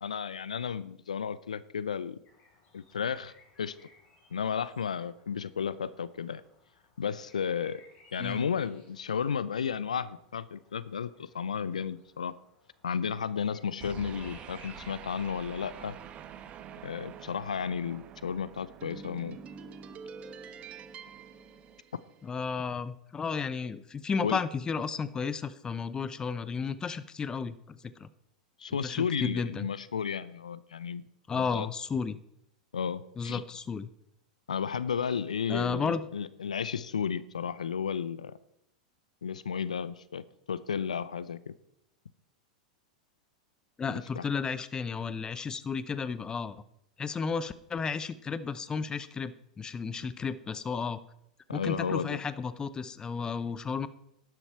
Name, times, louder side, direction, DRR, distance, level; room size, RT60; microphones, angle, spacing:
voice 1, 0.0-2.2 2.7-3.3 3.6-3.8 4.3-6.4 7.0-7.8 8.1-12.3 12.8-16.0 16.8-19.4 24.2-24.4 28.6-31.0 31.3-31.7 32.7-33.4 34.5-38.4 39.2-41.5 44.2-44.3 51.5-52.2, left 7 dB, 80° left, 18 dB, 0.5 m, -33 dB
sound 1, 2.2-15.3, left 3 dB, 35° left, 5.2 m, -60 dB
sound 2, 13.8-22.4, right 7 dB, 35° right, 1.2 m, -46 dB
voice 2, 22.2-28.1 28.8-29.7 31.3-32.2 33.2-33.9 35.5-36.0 43.8-46.6 47.0-51.0 51.5-53.9, left 5 dB, 20° left, 16 dB, 0.8 m, -33 dB
13.0 x 11.0 x 4.5 m, 0.78 s
figure-of-eight pair, 95°, 4 cm